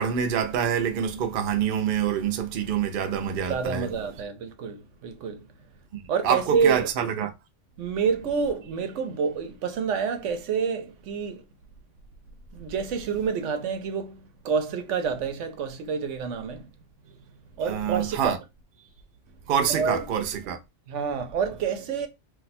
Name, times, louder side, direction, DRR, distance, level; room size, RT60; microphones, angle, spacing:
voice 1, 0.0-3.9 5.9-7.3 17.6-18.4 19.5-20.6, right 8 dB, 55° right, 0.6 m, -26 dB
voice 2, 3.5-5.5 6.1-6.9 7.8-11.4 12.5-16.7 17.1-17.2 17.6-18.4 19.7-20.0 20.9-22.1, right 6 dB, 80° right, 1.0 m, -28 dB
2.6 x 2.2 x 4.0 m
omnidirectional pair, 1.3 m